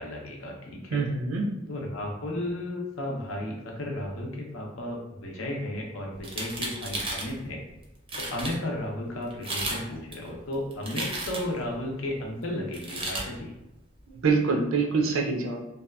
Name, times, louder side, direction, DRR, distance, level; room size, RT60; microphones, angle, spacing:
voice 1, 0.0-1.0 1.7-7.6 8.3-13.5, left 1 dB, 80° left, 0 dB, 0.6 m, -34 dB
voice 2, 0.9-1.4 14.2-15.6, right 4 dB, 85° right, 2 dB, 0.5 m, -25 dB
sound 1, 6.2-7.3 7.8-7.9 8.1-8.6 9.3-9.8 10.1-11.6 12.7-13.3, right 2 dB, 25° right, 0.5 m, -33 dB
2.7 x 2.3 x 2.2 m, 0.96 s
head